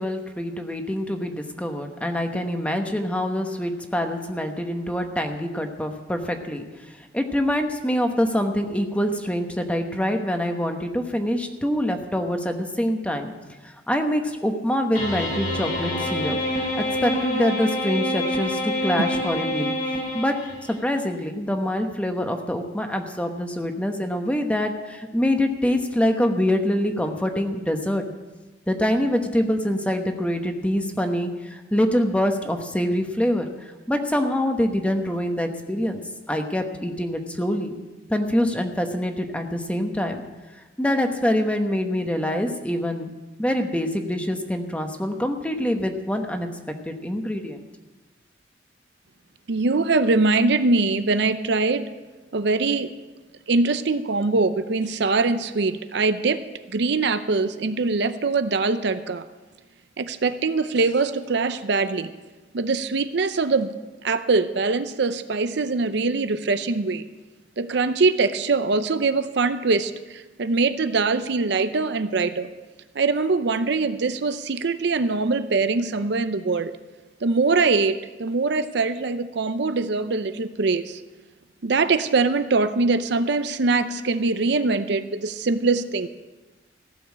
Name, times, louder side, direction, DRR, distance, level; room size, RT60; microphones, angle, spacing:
voice 1, 0.0-13.3 13.6-16.4 16.8-19.7 20.1-20.3 20.7-28.0 28.7-36.0 36.3-37.8 38.1-40.2 40.8-43.1 43.4-46.5 46.9-47.6, equal, 5° left, 5 dB, 1.1 m, -25 dB
sound 1, 14.9-20.7, left 1 dB, 45° left, 2.6 m, -27 dB
voice 2, 49.5-51.9 52.3-52.9 53.5-56.4 56.7-59.2 60.0-62.1 62.5-63.7 64.0-67.0 67.6-72.5 72.9-76.7 77.2-81.0 81.6-86.1, right 3 dB, 65° right, 11 dB, 0.6 m, -23 dB
15.5 x 7.0 x 8.5 m, 1.2 s
head